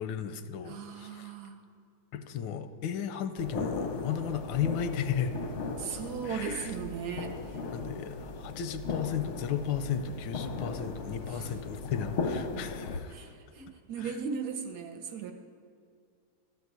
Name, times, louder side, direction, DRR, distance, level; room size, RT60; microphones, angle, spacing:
voice 1, 0.0-1.3 2.1-5.3 6.2-6.7 7.7-13.1 14.0-14.2, left 8 dB, 85° left, 10 dB, 1.3 m, -34 dB
voice 2, 0.6-1.6 5.8-7.6 11.3-11.6 13.1-15.3, right 6 dB, 65° right, 6 dB, 1.2 m, -37 dB
sound 1, 3.4-13.0, left 3 dB, 55° left, 0.8 m, -37 dB
13.0 x 4.6 x 8.1 m, 2.4 s
omnidirectional pair, 2.0 m